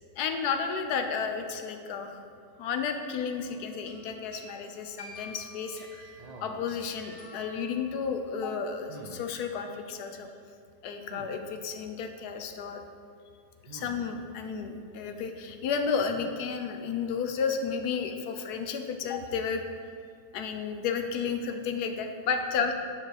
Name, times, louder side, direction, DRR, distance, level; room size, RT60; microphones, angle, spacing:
voice 1, 0.2-2.2 2.6-6.1 6.4-10.3 10.8-12.8 13.7-19.6 20.3-22.7, left 6 dB, 75° left, 5 dB, 1.2 m, -32 dB
sound 1, 3.3-3.6 3.9-8.3, left 1 dB, 20° left, 2.2 m, -50 dB
sound 2, 6.2-6.8 8.9-9.3 11.1-11.3 13.7-14.2 16.0-16.4, right 2 dB, 60° right, 0.4 m, -46 dB
8.6 x 4.9 x 4.8 m, 2.3 s
omnidirectional pair, 1.7 m